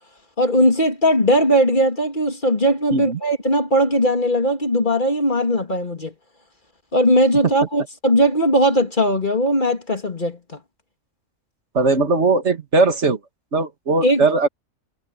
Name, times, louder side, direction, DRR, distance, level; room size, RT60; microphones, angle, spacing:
voice 1, 0.4-6.1 6.9-10.4 14.0-14.2, equal, 35° left, 2.8 m, -18 dB
voice 2, 11.7-13.2 13.5-14.5, right 3 dB, 55° right, 2.4 m, -19 dB
omnidirectional pair, 1.4 m